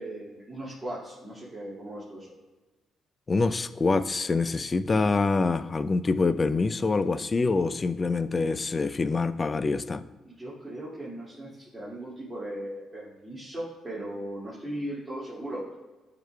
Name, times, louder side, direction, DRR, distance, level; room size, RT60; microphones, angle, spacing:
voice 1, 0.0-2.3 10.2-15.8, right 1 dB, 15° right, -10 dB, 2.2 m, -38 dB
voice 2, 3.3-10.0, left 3 dB, 30° left, 14 dB, 0.3 m, -25 dB
11.5 x 4.8 x 2.3 m, 1.2 s
cardioid pair, 90°, 0 cm